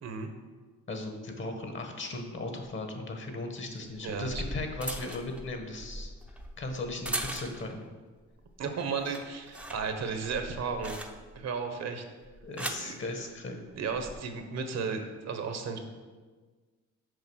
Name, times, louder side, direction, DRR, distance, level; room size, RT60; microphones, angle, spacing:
voice 1, 0.9-6.1 6.6-7.8 12.4-13.6, left 2 dB, 40° left, 4 dB, 1.5 m, -37 dB
sound 1, 2.6-2.7 3.9-7.8 8.3-8.6 8.9-11.5 12.2-12.9 13.8-14.1, right 1 dB, 5° right, 0.8 m, -40 dB
voice 2, 4.0-4.4 8.6-11.0 11.3-12.0 12.8-13.0 13.8-15.8, right 5 dB, 60° right, 6 dB, 1.2 m, -34 dB
6.6 x 5.1 x 6.3 m, 1.4 s
cardioid pair, 90°, 30 cm